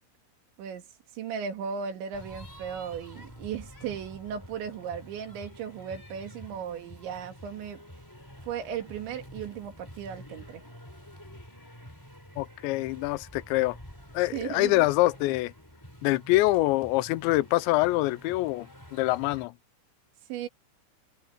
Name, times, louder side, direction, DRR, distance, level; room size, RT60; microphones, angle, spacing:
voice 1, 1.1-7.8 8.5-10.6 14.3-14.9 20.3-20.5, right 8 dB, 80° right, 4.6 m, -36 dB
sound 1, 2.1-19.5, equal, 5° left, 4.5 m, -48 dB
voice 2, 12.4-13.8 14.1-15.5 16.0-19.5, left 18 dB, 85° left, 2.9 m, -25 dB
omnidirectional pair, 5.2 m